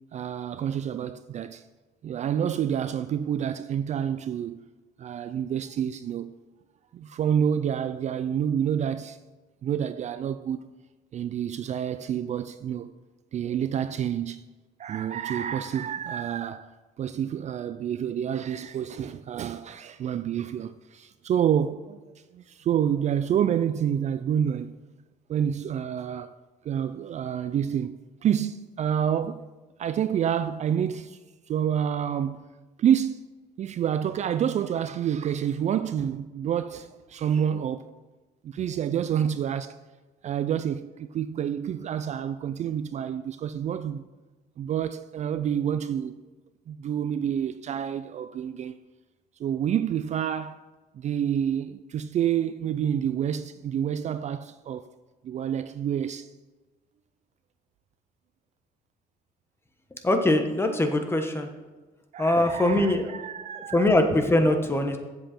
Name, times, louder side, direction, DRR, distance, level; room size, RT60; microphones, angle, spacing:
voice 1, 0.1-1.6 2.0-4.7 5.0-6.3 6.9-9.2 9.6-10.6 11.1-12.9 13.3-14.4 14.8-22.0 22.3-24.7 25.3-26.3 26.6-29.5 29.8-31.2 31.5-32.4 32.8-33.2 33.6-37.9 38.4-39.8 40.2-44.1 44.6-46.1 46.7-48.8 49.4-50.6 50.9-54.9 55.2-56.3 62.1-63.9, right 9 dB, 45° right, 0.4 m, -28 dB
voice 2, 60.0-61.5 62.2-63.2 63.6-65.0, left 1 dB, 15° left, 1.1 m, -22 dB
7.8 x 7.3 x 4.3 m
cardioid pair, 110°, 17 cm